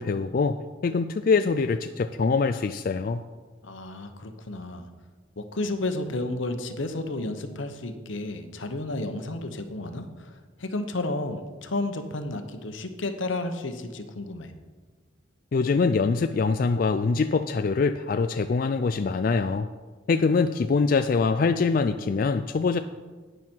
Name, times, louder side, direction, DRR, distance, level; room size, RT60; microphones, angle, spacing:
voice 1, 0.0-3.2 15.5-19.7 20.1-22.8, left 4 dB, 45° left, 9 dB, 0.3 m, -24 dB
voice 2, 3.6-4.9 5.4-14.5, left 2 dB, 80° left, 8 dB, 1.0 m, -32 dB
11.5 x 9.3 x 4.6 m, 1.4 s
head